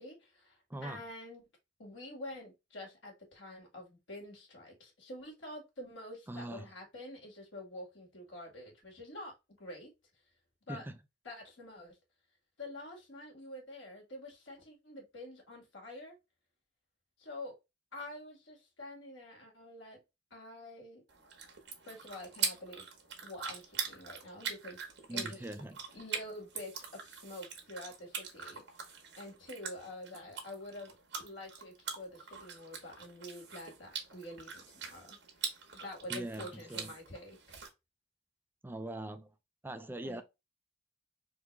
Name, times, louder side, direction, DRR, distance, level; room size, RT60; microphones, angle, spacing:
voice 1, 0.0-1.4 1.8-9.9 10.7-10.8 11.2-12.0 12.6-16.2 17.2-17.6 17.9-20.0 20.3-21.0 21.8-22.9 23.2-25.5 25.9-35.2 35.7-37.4 40.0-40.2, left 1 dB, 85° left, 2.1 m, -47 dB
voice 2, 0.7-1.0 6.3-6.7 10.7-11.0 25.1-25.8 36.1-36.9 38.6-39.3 39.6-40.2, right 1 dB, 10° right, 0.4 m, -42 dB
sound 1, 21.1-37.7, right 6 dB, 65° right, 1.2 m, -43 dB
4.0 x 2.8 x 3.3 m
head